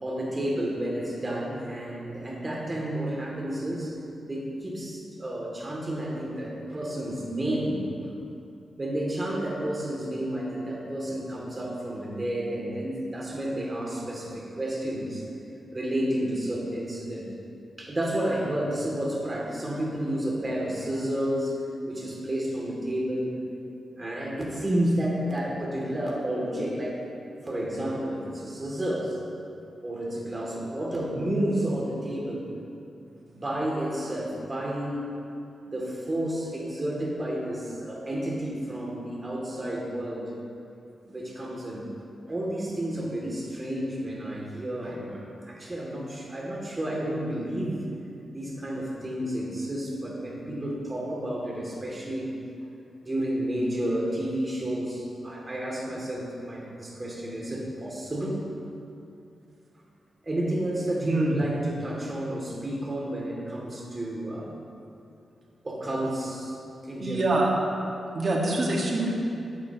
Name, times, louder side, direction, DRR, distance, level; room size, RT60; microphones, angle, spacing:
voice 1, 0.0-3.9 4.2-7.9 8.8-15.2 15.7-17.3 17.8-23.3 24.0-27.0 27.4-29.2 29.8-32.5 33.3-35.1 35.6-40.3 41.1-41.9 42.3-47.8 48.3-52.3 53.0-58.4 60.2-64.5 65.6-66.6 66.8-67.5, right 1 dB, 30° right, -3 dB, 2.7 m, -31 dB
voice 2, 61.0-61.4 67.0-67.5 68.1-69.1, right 2 dB, 50° right, -2 dB, 1.8 m, -25 dB
14.0 x 9.0 x 3.1 m, 2.6 s
cardioid pair, 85°, 0 cm